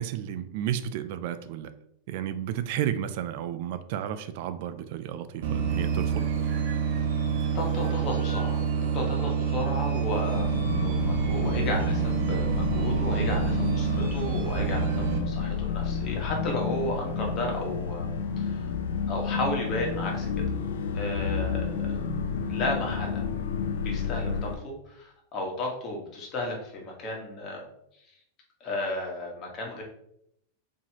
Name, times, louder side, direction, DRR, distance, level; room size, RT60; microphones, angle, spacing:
voice 1, 0.0-1.7 2.1-6.5, right 10 dB, 55° right, 11 dB, 0.3 m, -32 dB
sound 1, 4.4-13.0, equal, 15° right, 1.1 m, -46 dB
sound 2, 5.4-15.2, right 7 dB, 75° right, 0.8 m, -27 dB
voice 2, 7.5-8.6 8.9-18.1 18.4-18.7 19.1-20.3 20.9-22.0 22.5-23.2 23.8-27.6 28.6-29.8, left 2 dB, 30° left, -1 dB, 1.3 m, -33 dB
sound 3, 10.3-24.6, left 5 dB, 80° left, 0.5 m, -30 dB
4.4 x 3.0 x 2.9 m, 0.74 s
supercardioid pair, 140°, 0 cm